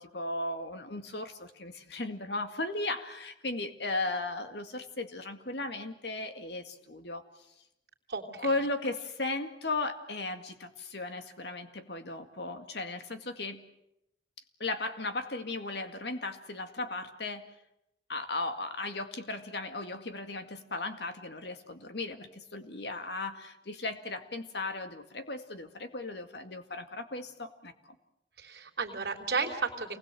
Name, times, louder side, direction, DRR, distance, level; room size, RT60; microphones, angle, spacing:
voice 1, 0.0-7.2 8.4-13.6 14.6-17.5 18.1-28.0, left 2 dB, 65° left, 7 dB, 2.1 m, -36 dB
voice 2, 8.1-8.5 28.4-30.0, right 4 dB, 55° right, 1 dB, 3.3 m, -33 dB
28.5 x 20.5 x 7.7 m, 0.84 s
head